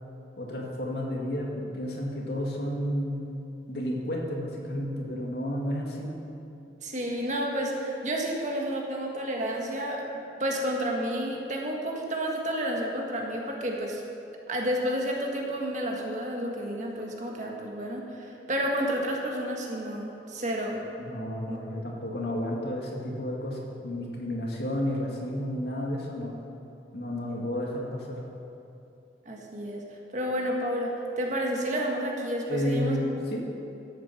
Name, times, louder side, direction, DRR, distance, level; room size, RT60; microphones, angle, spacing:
voice 1, 0.4-6.2 21.0-26.3 26.9-28.2 32.5-33.4, left 1 dB, 65° left, -2 dB, 2.1 m, -31 dB
voice 2, 6.8-10.1 10.4-14.0 14.5-20.8 21.5-21.6 29.2-29.8 30.1-33.0, equal, 45° right, -1 dB, 1.6 m, -30 dB
13.0 x 8.5 x 5.9 m, 2.7 s
head